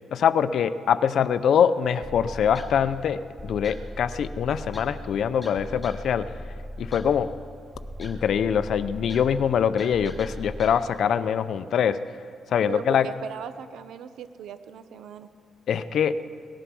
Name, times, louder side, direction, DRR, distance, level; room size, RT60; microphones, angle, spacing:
voice 1, 0.1-6.3 6.8-7.3 8.0-12.0 12.5-13.1 15.7-16.2, left 8 dB, 60° left, 13 dB, 0.5 m, -23 dB
sound 1, 2.0-10.7, left 1 dB, ahead, 1.3 m, -39 dB
voice 2, 12.7-15.3, right 8 dB, 80° right, 11 dB, 0.8 m, -38 dB
18.5 x 11.5 x 6.1 m, 2.4 s
cardioid pair, 165°, 0 cm